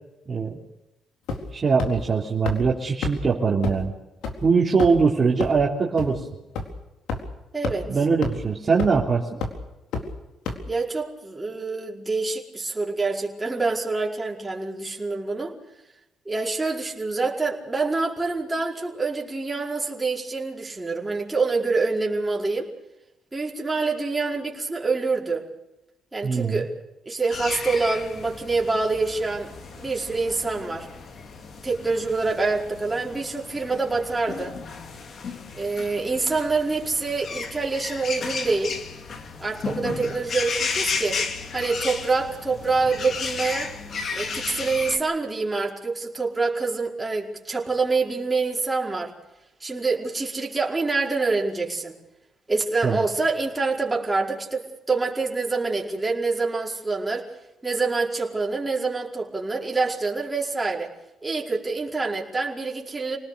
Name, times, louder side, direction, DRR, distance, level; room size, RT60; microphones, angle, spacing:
voice 1, 0.3-0.6 1.5-3.9 4.4-6.3 7.9-9.3 26.2-26.6 52.8-53.0, right 5 dB, 30° right, -3 dB, 3.4 m, -22 dB
sound 1, 1.3-1.5 1.8-1.9 2.5-2.6 3.0-3.1 3.6-3.7 4.2-4.3 4.8-5.0 5.4-5.5 6.0-6.1 6.6-6.7 7.1-7.2 7.6-7.7 8.2-8.3 8.8-9.0 9.4-9.5 9.9-10.0 10.5-10.6, left 4 dB, 90° left, 4.0 m, -27 dB
voice 2, 7.5-7.9 10.7-15.5 16.2-22.7 23.3-25.4 26.1-26.7 27.0-30.9 31.6-34.6 35.5-38.8 39.4-41.2 41.5-43.7 44.1-49.1 49.6-51.9 52.5-57.3 57.6-60.9 61.2-63.2, right 3 dB, 15° right, -2 dB, 5.0 m, -26 dB
sound 2, 27.3-45.0, left 5 dB, 50° left, 2.9 m, -34 dB
27.5 x 19.0 x 7.0 m, 0.95 s
cardioid pair, 115°, 0 cm